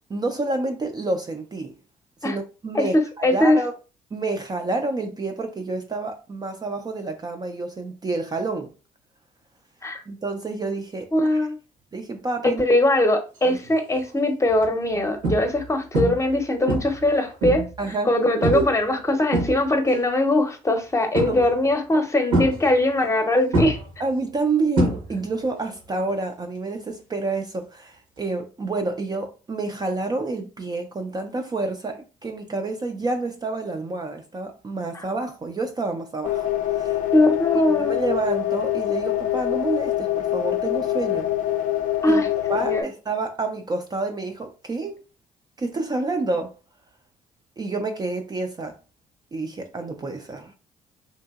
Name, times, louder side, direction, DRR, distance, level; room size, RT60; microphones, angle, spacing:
voice 1, 0.1-1.8 2.2-3.7 4.1-8.7 10.1-11.5 11.9-12.6 13.5-13.6 17.8-18.1 18.5-18.7 19.2-19.3 21.3-21.5 21.9-22.1 24.0-37.0 37.8-41.3 42.1-42.2 42.5-45.0 45.6-46.5 47.6-48.8 49.3-50.5, right 3 dB, 25° right, 0.5 m, -28 dB
voice 2, 2.7-3.6 9.8-10.0 11.1-11.6 12.4-17.6 18.1-23.8 34.9-35.0 37.1-37.9 42.0-42.3 42.5-42.9, left 1 dB, 20° left, 0.8 m, -21 dB
sound 1, 13.6-13.9 14.5-14.6 15.2-15.7 15.9-16.4 16.7-17.8 18.4-18.8 19.1-20.0 21.1-21.7 22.3-23.2 23.5-25.4 25.7-26.1 28.2-28.3, right 1 dB, 85° right, 1.1 m, -25 dB
sound 2, 36.2-42.8, left 13 dB, 60° left, 0.5 m, -25 dB
2.8 x 2.5 x 2.4 m
hypercardioid pair, 55°, 15 cm